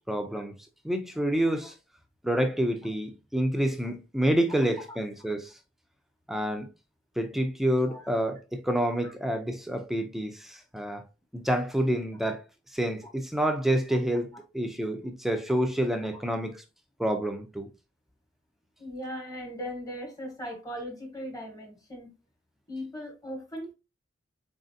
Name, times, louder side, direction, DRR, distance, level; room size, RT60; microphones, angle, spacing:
voice 1, 0.1-0.5 0.8-1.7 2.2-5.5 6.3-6.7 7.2-11.0 11.3-12.4 12.7-16.6 17.0-17.7, right 1 dB, ahead, 0.6 m, -28 dB
voice 2, 18.8-22.1 22.7-23.7, equal, 20° left, 1.2 m, -38 dB
4.1 x 3.8 x 2.7 m
head